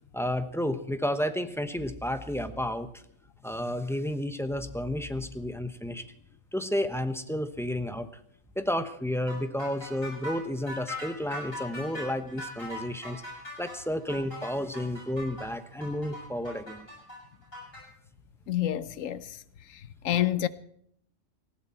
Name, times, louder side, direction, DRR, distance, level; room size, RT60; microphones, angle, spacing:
voice 1, 0.1-3.0 3.4-6.0 6.5-8.1 8.6-13.2 13.6-16.9, left 1 dB, ahead, 0.9 m, -31 dB
sound 1, 9.3-17.8, left 1 dB, 45° left, 7.5 m, -40 dB
voice 2, 18.5-19.4 19.7-20.5, left 12 dB, 90° left, 1.2 m, -28 dB
18.5 x 15.5 x 4.4 m
omnidirectional pair, 1.3 m